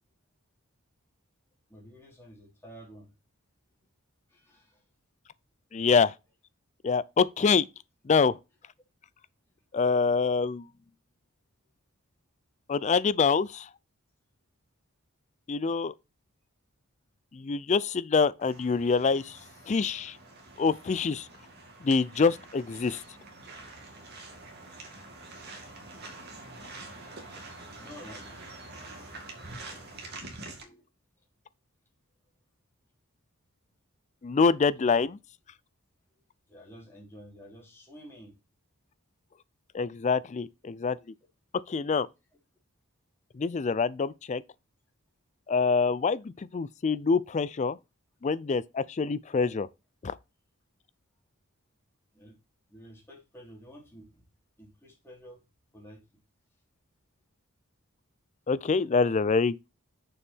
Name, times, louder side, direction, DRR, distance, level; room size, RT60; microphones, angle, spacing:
voice 1, 1.7-3.1 4.3-4.8 27.8-28.4 30.6-30.9 36.2-38.4 52.1-52.3 52.7-54.2 54.6-55.4 55.7-56.0, equal, 10° left, 3.0 m, -50 dB
voice 2, 5.7-6.1 6.8-7.6 8.1-8.4 9.7-10.7 12.7-13.7 15.5-15.9 17.3-19.4 19.7-20.2 20.6-21.3 21.8-23.0 34.2-35.1 39.7-41.0 41.7-42.1 43.3-44.4 45.5-47.8 48.2-49.7 50.0-50.1 58.5-59.7, left 5 dB, 30° left, 0.4 m, -25 dB
sound 1, 18.4-30.6, right 2 dB, 50° right, 2.1 m, -46 dB
6.9 x 5.4 x 4.4 m
head